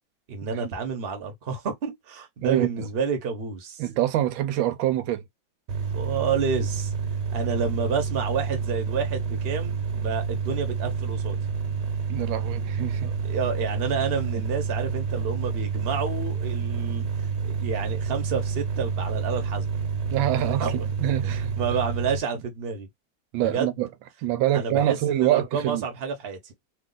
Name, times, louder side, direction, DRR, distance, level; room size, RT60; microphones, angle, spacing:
voice 1, 0.3-3.8 5.9-6.9 7.3-11.4 13.2-17.1 17.4-19.7 20.3-20.8 21.2-22.9 23.4-23.7 24.5-26.5, right 5 dB, 40° right, 1.0 m, -29 dB
voice 2, 2.4-2.9 3.8-5.2 12.1-13.1 20.1-20.7 21.0-21.6 23.3-23.9 24.2-25.8, right 13 dB, 90° right, 1.4 m, -25 dB
sound 1, 5.7-22.2, right 5 dB, 65° right, 1.5 m, -29 dB
3.2 x 2.4 x 3.8 m
omnidirectional pair, 2.1 m